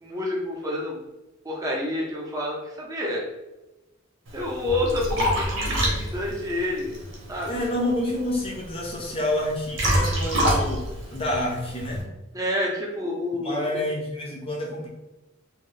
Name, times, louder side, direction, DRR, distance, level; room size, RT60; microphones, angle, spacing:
voice 1, 0.0-1.0 1.4-3.2 4.3-6.9 7.3-7.6 12.3-13.7, left 1 dB, 15° right, -2 dB, 0.6 m, -28 dB
Liquid, 4.3-12.0, equal, 75° right, 0.9 m, -27 dB
voice 2, 7.5-12.1 13.4-14.9, left 1 dB, 30° left, -1 dB, 0.5 m, -28 dB
2.7 x 2.5 x 3.1 m, 1.0 s
head